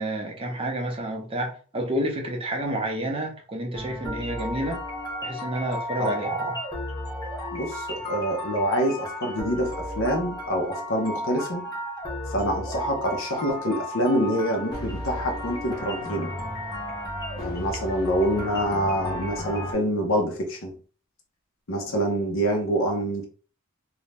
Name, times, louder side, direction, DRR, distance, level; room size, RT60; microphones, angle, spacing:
voice 1, 0.0-4.8 5.2-6.6, right 1 dB, 25° right, 0.6 m, -29 dB
sound 1, 3.7-19.7, left 1 dB, 20° left, 0.7 m, -34 dB
voice 2, 7.5-11.7 12.3-16.3 17.4-20.7 21.7-23.3, equal, 60° left, 0.7 m, -26 dB
2.6 x 2.1 x 3.2 m
head